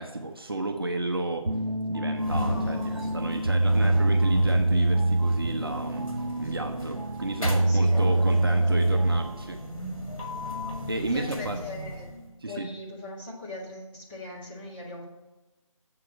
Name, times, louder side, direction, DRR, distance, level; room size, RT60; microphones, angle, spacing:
voice 1, 0.0-1.6 1.9-9.6 10.9-11.6 12.4-12.8, right 2 dB, 45° right, 4 dB, 0.7 m, -32 dB
sound 1, 1.4-9.5, right 2 dB, 70° right, 1.3 m, -25 dB
sound 2, 2.2-12.3, left 1 dB, 75° left, 2.5 m, -36 dB
voice 2, 2.4-3.2 7.7-8.2 8.4-8.5 11.1-12.1 12.5-15.0, left 2 dB, 15° left, -7 dB, 1.8 m, -40 dB
7.7 x 4.8 x 7.1 m, 1.1 s
figure-of-eight pair, 170°, 17 cm